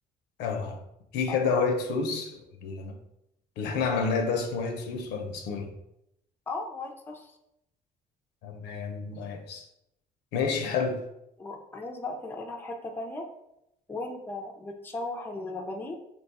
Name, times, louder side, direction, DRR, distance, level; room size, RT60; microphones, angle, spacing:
voice 1, 0.4-0.8 1.1-3.0 3.6-5.7 8.4-9.7 10.3-11.0, left 5 dB, 85° left, 4 dB, 0.6 m, -29 dB
voice 2, 6.5-7.3 10.6-10.7 11.4-13.3 13.9-15.9, left 2 dB, 10° left, 1 dB, 0.4 m, -37 dB
2.9 x 2.3 x 4.0 m, 0.81 s
cardioid pair, 110°, 17 cm